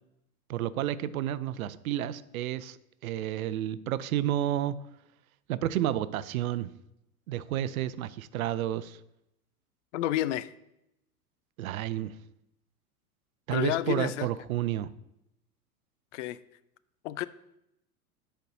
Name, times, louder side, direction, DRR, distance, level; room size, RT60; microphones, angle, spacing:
voice 1, 0.5-2.8 3.0-4.8 5.5-6.7 7.3-9.0 11.6-12.1 13.5-14.9, right 12 dB, 70° right, 16 dB, 0.5 m, -31 dB
voice 2, 9.9-10.5 13.5-14.3 16.1-16.4 17.0-17.3, left 13 dB, 55° left, 17 dB, 0.5 m, -30 dB
10.5 x 4.5 x 2.7 m, 0.82 s
hypercardioid pair, 95°, 45 cm